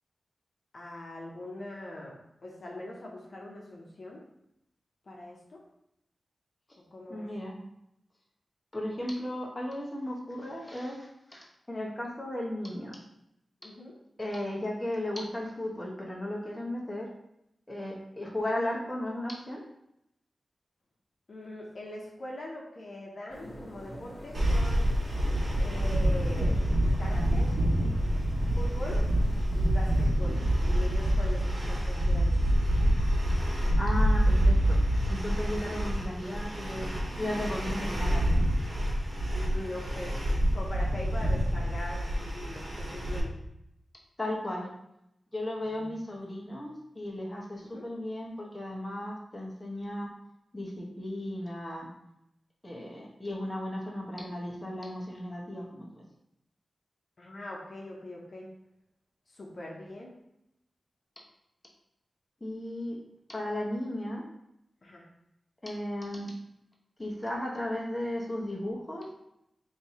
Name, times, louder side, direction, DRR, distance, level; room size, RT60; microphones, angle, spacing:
voice 1, 0.7-2.1 2.4-4.2 5.1-5.6 6.8-7.3 13.6-13.9 21.3-24.9 25.6-26.6 27.0-27.5 28.5-29.1 29.5-32.7 39.3-40.2 40.5-43.4 45.6-45.9 47.6-47.9 57.2-58.5 59.3-60.1 64.8-65.0, left 1 dB, 60° left, -3 dB, 0.8 m, -42 dB
voice 2, 7.1-7.6 8.7-13.0 14.2-17.1 17.7-19.6 33.8-34.8 35.1-36.9 37.2-38.4 44.2-44.7 45.3-50.1 50.5-51.9 52.6-56.0 62.4-63.0 63.3-64.2 65.6-66.3 67.0-69.0, left 1 dB, 20° left, -3 dB, 1.0 m, -35 dB
sound 1, 23.3-31.0, equal, 35° left, 1.5 m, -43 dB
sound 2, 24.3-43.2, equal, 50° right, 1.2 m, -27 dB
3.3 x 2.7 x 4.2 m, 0.81 s
cardioid pair, 65°, 0 cm